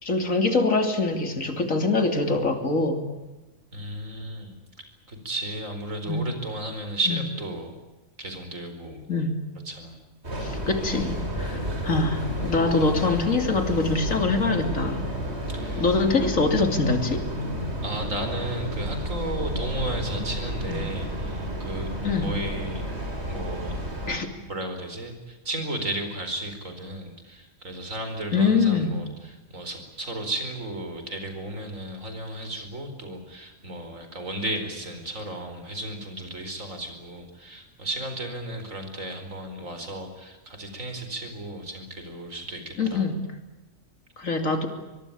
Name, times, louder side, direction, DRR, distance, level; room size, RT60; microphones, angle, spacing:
voice 1, 0.0-3.0 6.1-6.2 7.1-7.2 9.1-9.4 10.4-15.1 15.8-17.2 20.7-20.9 22.0-22.3 24.1-24.3 28.3-28.9 42.8-43.2 44.2-44.7, left 3 dB, 90° left, 6 dB, 3.3 m, -24 dB
voice 2, 3.7-7.8 8.2-9.0 9.7-10.0 15.5-15.8 17.8-22.8 23.3-23.7 24.5-43.0, right 1 dB, 85° right, 6 dB, 5.0 m, -34 dB
Train, 10.2-24.2, equal, 55° right, 5.5 m, -31 dB
23.5 x 23.0 x 8.7 m, 1.1 s
omnidirectional pair, 1.3 m